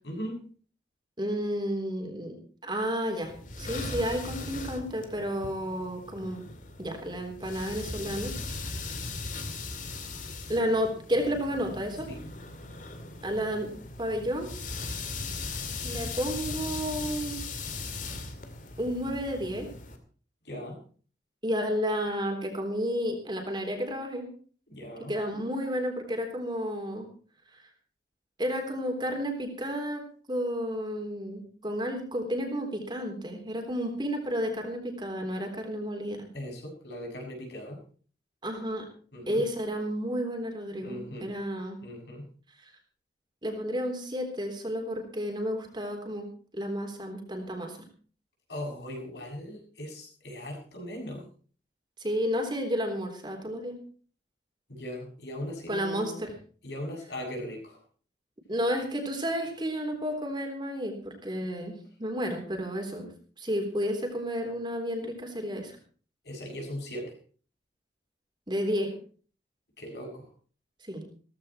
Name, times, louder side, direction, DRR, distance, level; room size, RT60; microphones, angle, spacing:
voice 1, 0.0-0.4 12.1-12.2 20.4-20.8 24.7-25.2 36.3-37.8 39.1-39.4 40.8-41.3 41.8-42.3 48.5-51.3 54.7-56.2 56.6-57.8 66.2-67.2 69.8-70.3, left 1 dB, 75° left, 1 dB, 7.3 m, -39 dB
voice 2, 1.2-2.4 2.6-3.3 3.6-6.4 6.8-9.0 10.5-12.1 13.2-13.7 14.0-14.5 14.9-15.0 15.8-17.4 18.8-19.7 21.4-24.3 25.1-27.1 28.4-30.0 30.3-36.3 38.4-38.9 39.3-41.8 43.4-46.3 46.5-47.8 52.0-53.8 55.7-56.3 58.5-63.1 63.4-65.8 68.5-68.9 70.8-71.0, equal, 25° right, 3 dB, 3.7 m, -31 dB
sound 1, 3.2-20.0, left 3 dB, 45° left, 2.3 m, -38 dB
16.5 x 15.0 x 4.4 m, 0.42 s
head